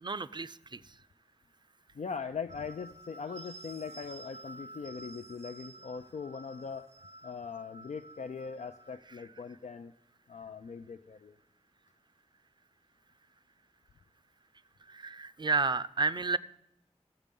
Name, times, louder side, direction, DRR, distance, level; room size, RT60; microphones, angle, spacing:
voice 1, 0.0-0.8 14.9-16.4, right 4 dB, 40° right, 14 dB, 0.5 m, -31 dB
voice 2, 1.9-6.9 7.2-9.9 10.3-11.4, left 5 dB, 80° left, 7 dB, 0.5 m, -41 dB
sound 1, 2.5-9.0, right 2 dB, 85° right, 1.0 m, -51 dB
14.5 x 7.5 x 5.3 m, 0.86 s
wide cardioid pair, 65°, 12 cm